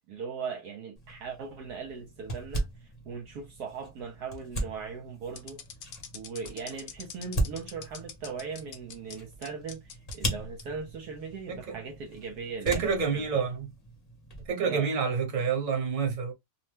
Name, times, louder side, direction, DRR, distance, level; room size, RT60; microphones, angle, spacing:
voice 1, 0.1-2.7 3.0-5.6 6.1-13.4 14.6-14.9, right 5 dB, 70° right, 1.1 m, -39 dB
sound 1, 1.0-14.5, right 1 dB, 30° left, 0.8 m, -38 dB
sound 2, 5.3-9.2 9.4-10.2 10.6-10.7 11.3-11.6, left 7 dB, 65° left, 0.9 m, -43 dB
voice 2, 12.6-13.7 14.5-16.3, right 6 dB, 35° right, 1.0 m, -28 dB
2.8 x 2.1 x 3.2 m
omnidirectional pair, 1.9 m